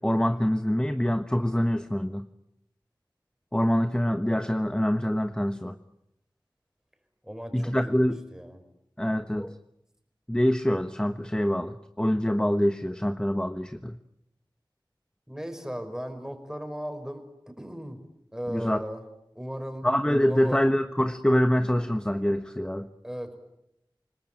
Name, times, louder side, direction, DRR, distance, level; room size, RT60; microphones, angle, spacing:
voice 1, 0.0-2.3 3.5-5.8 7.5-8.2 9.0-9.5 10.3-14.0 18.5-18.8 19.8-22.9, equal, 10° left, 9 dB, 1.2 m, -25 dB
voice 2, 7.2-8.6 15.3-18.0 18.3-19.1 19.3-20.6 23.0-23.4, equal, 5° right, 7 dB, 5.2 m, -37 dB
29.0 x 20.0 x 9.1 m, 0.82 s
wide cardioid pair, 45°, 8 cm